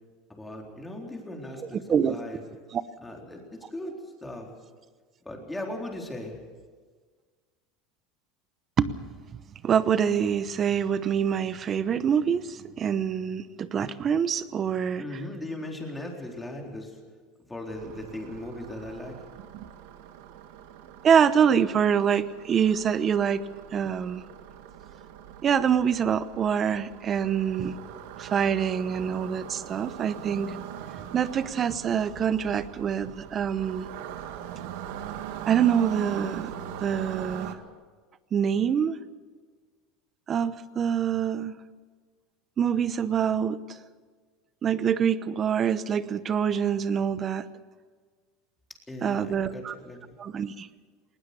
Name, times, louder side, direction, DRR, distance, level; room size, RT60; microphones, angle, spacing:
voice 1, 0.4-1.6 2.0-2.4 3.0-4.5 5.2-6.4 15.0-17.0 17.5-19.2 48.9-50.0, left 1 dB, 10° left, 0 dB, 4.0 m, -38 dB
voice 2, 9.6-15.0 21.0-23.4 23.7-24.2 25.4-27.8 28.2-30.5 31.0-33.9 35.5-36.5 36.8-37.6 38.3-39.0 40.3-41.6 42.6-43.6 44.6-47.5 49.0-49.7 50.2-50.7, right 8 dB, 30° right, 15 dB, 0.9 m, -25 dB
sound 1, 17.7-37.5, right 10 dB, 75° right, 1.7 m, -41 dB
20.0 x 19.5 x 6.9 m, 1.5 s
supercardioid pair, 130°, 0 cm